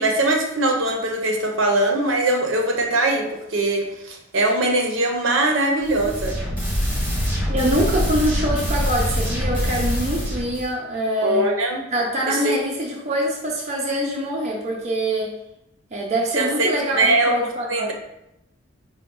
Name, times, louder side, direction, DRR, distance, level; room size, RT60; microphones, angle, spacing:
voice 1, 0.0-3.2 3.5-6.3 11.2-11.8 12.3-12.5 16.3-16.7 17.0-17.9, right 2 dB, 70° right, 1 dB, 0.7 m, -21 dB
sound 1, 5.8-10.7, equal, 10° right, 1.1 m, -24 dB
voice 2, 7.5-11.5 11.9-15.3 15.9-17.9, right 1 dB, 35° right, -2 dB, 0.5 m, -24 dB
4.7 x 2.2 x 3.7 m, 0.85 s
head